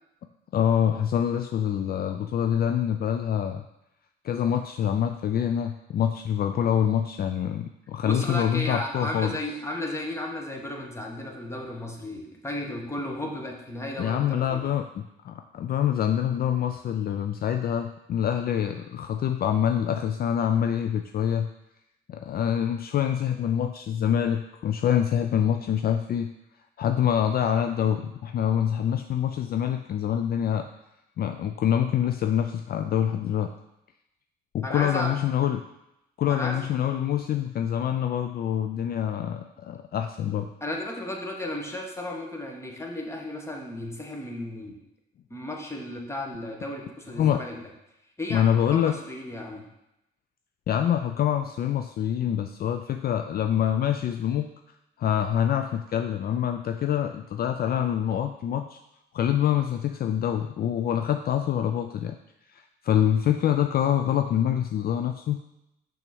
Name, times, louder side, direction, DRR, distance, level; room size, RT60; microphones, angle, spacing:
voice 1, 0.5-3.6 4.2-9.4 14.0-21.5 22.1-26.3 26.8-30.7 31.2-33.5 34.5-35.6 36.2-40.5 47.2-47.4 48.3-49.0 50.7-54.5 55.0-58.8 59.1-62.2 62.5-65.4, left 9 dB, 50° left, 7 dB, 0.4 m, -25 dB
voice 2, 8.0-14.6 34.6-35.2 36.3-36.6 40.6-44.8 45.3-47.6 48.2-49.7, left 1 dB, 15° left, 1 dB, 1.3 m, -34 dB
6.0 x 3.6 x 6.0 m, 0.88 s
cardioid pair, 90°, 20 cm